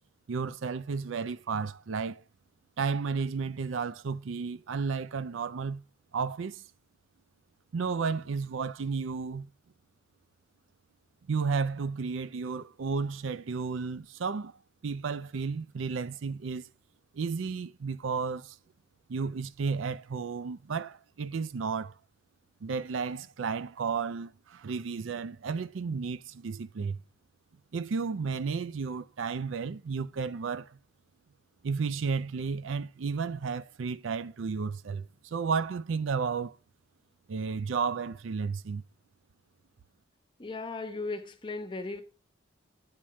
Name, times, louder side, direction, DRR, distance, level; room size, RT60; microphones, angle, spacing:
voice 1, 0.3-2.2 2.8-5.8 6.1-6.6 7.7-9.5 11.3-14.5 14.8-16.7 17.1-18.6 19.1-21.9 22.6-27.0 27.7-30.7 31.6-35.1 35.3-36.5 37.3-38.8, right 5 dB, 70° right, 0.4 m, -32 dB
voice 2, 40.4-42.0, left 3 dB, 25° left, 1.0 m, -36 dB
8.7 x 4.5 x 6.1 m
head